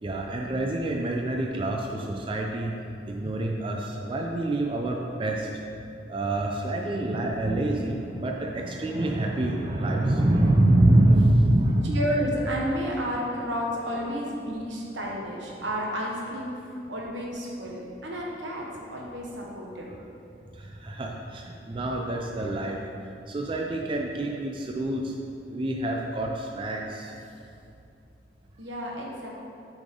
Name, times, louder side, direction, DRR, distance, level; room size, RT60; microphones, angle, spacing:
voice 1, 0.0-2.7 3.1-5.5 6.1-12.0 20.6-22.8 23.3-25.1 25.5-27.1, right 1 dB, 30° right, 1 dB, 0.4 m, -25 dB
voice 2, 11.8-16.5 16.9-19.9 28.6-29.3, equal, 85° right, -3 dB, 1.2 m, -31 dB
7.5 x 4.9 x 3.7 m, 2.6 s
head